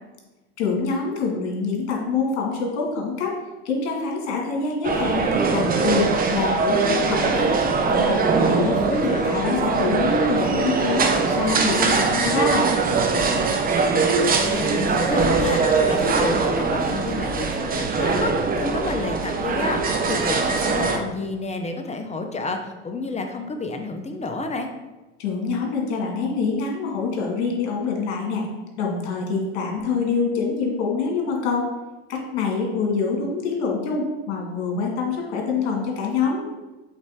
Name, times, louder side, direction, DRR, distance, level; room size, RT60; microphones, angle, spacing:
voice 1, 0.6-3.4 3.6-7.5 7.9-8.7 9.0-12.7 25.2-28.4 28.8-31.7 32.1-36.4, left 4 dB, 70° left, 0 dB, 2.1 m, -25 dB
sound 1, 4.8-21.0, right 4 dB, 25° right, 0.8 m, -22 dB
voice 2, 8.7-9.3 14.5-24.7, left 2 dB, 20° left, 5 dB, 0.8 m, -29 dB
8.0 x 3.9 x 3.6 m, 1.1 s
hypercardioid pair, 90°, 34 cm